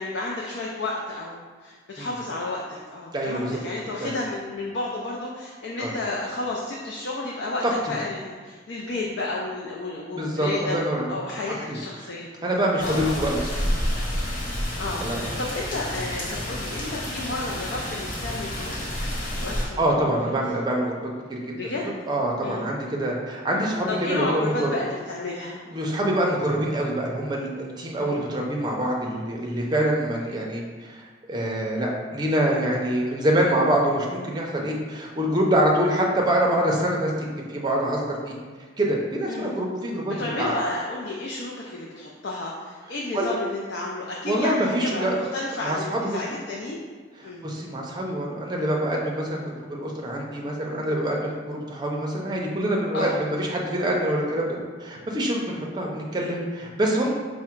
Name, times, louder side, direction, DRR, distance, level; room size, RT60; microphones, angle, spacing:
voice 1, 0.0-12.3 12.8-13.2 14.8-18.7 19.4-20.4 21.5-21.9 22.4-22.6 23.9-25.6 28.0-28.2 39.3-39.5 40.2-46.8 47.2-47.4 52.9-53.1, left 2 dB, 65° left, -3 dB, 0.4 m, -32 dB
voice 2, 3.1-3.5 4.0-4.1 5.8-5.9 10.1-11.1 11.7-11.8 12.4-13.4 15.0-15.4 19.8-21.0 21.3-21.4 22.1-24.7 25.7-37.1 37.5-38.3 38.8-40.6 43.1-43.4 44.2-45.3 45.6-46.4 47.4-49.4 49.7-57.1, right 1 dB, 20° right, -2 dB, 0.6 m, -25 dB
sound 1, 12.8-19.7, equal, 45° left, 0.8 m, -29 dB
4.7 x 2.1 x 4.4 m, 1.5 s
head